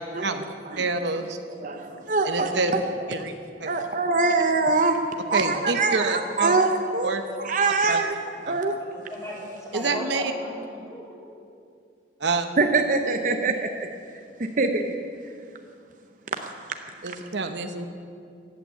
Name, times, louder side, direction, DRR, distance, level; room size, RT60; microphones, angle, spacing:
voice 1, 0.8-1.4 2.2-2.7 3.1-3.3 3.6-3.7 5.3-6.6 7.0-7.2 7.9-8.0 8.5-8.6 9.7-10.3 12.2-12.5 17.0-17.9, right 3 dB, 70° right, 7 dB, 0.9 m, -27 dB
voice 2, 1.6-2.8 3.6-5.0 5.3-7.1 7.4-8.2 8.5-8.8 12.6-13.9 14.4-15.0, right 3 dB, 45° right, 5 dB, 0.7 m, -24 dB
voice 3, 8.8-11.3, equal, 15° left, -4 dB, 3.3 m, -37 dB
15.0 x 9.0 x 8.3 m, 2.4 s
head